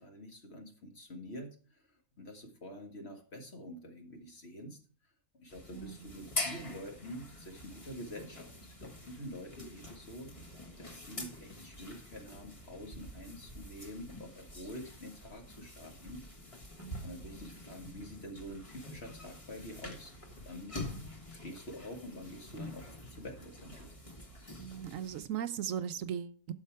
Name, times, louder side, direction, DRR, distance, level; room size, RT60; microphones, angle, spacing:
voice 1, 0.0-4.8 5.3-10.3 10.8-16.2 17.0-20.1 20.4-20.8 21.3-24.0, equal, 50° left, 2.0 m, -47 dB
sound 1, 5.5-25.3, left 1 dB, 25° left, 1.4 m, -46 dB
voice 2, 5.7-6.1 16.8-17.2 24.6-26.5, right 9 dB, 75° right, 1.0 m, -38 dB
11.0 x 6.6 x 4.6 m
omnidirectional pair, 1.5 m